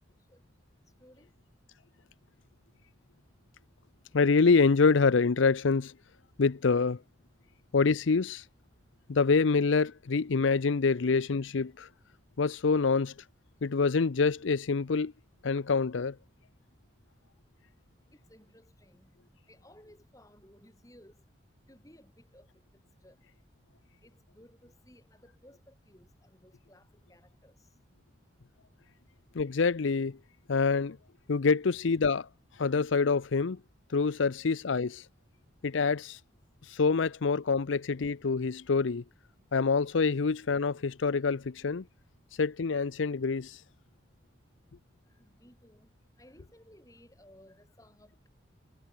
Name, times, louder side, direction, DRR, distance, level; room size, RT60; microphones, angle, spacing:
voice 1, 1.0-1.3 18.1-19.2 19.5-21.2 21.7-22.5 23.0-23.2 24.0-27.7 45.1-45.9 46.2-48.3, left 1 dB, 15° left, 6.7 m, -58 dB
voice 2, 4.1-5.9 6.4-7.0 7.7-8.4 9.1-11.9 12.4-13.1 13.6-15.1 15.4-16.2 29.3-30.2 30.5-31.0 31.3-32.3 32.6-33.6 33.9-35.1 35.6-36.2 36.6-39.0 39.5-41.8 42.4-43.6, left 4 dB, 80° left, 0.6 m, -26 dB
head